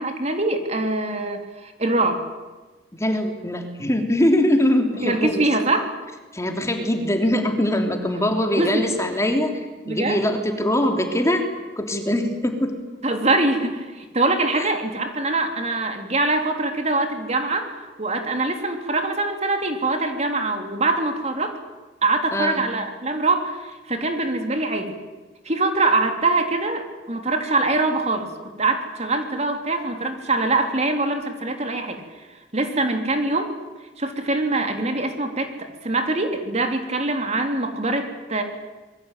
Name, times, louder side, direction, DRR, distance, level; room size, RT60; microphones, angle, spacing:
voice 1, 0.0-2.2 5.0-5.9 8.6-8.8 9.8-10.2 13.0-21.6 22.0-25.0 25.4-32.0 32.5-33.5 34.0-38.4, right 2 dB, 40° right, 5 dB, 3.5 m, -23 dB
voice 2, 3.0-5.5 6.3-9.5 9.9-11.4 11.8-12.7 14.6-14.7 22.3-22.6, left 1 dB, 15° left, 4 dB, 3.3 m, -22 dB
26.5 x 22.5 x 9.1 m, 1.2 s
head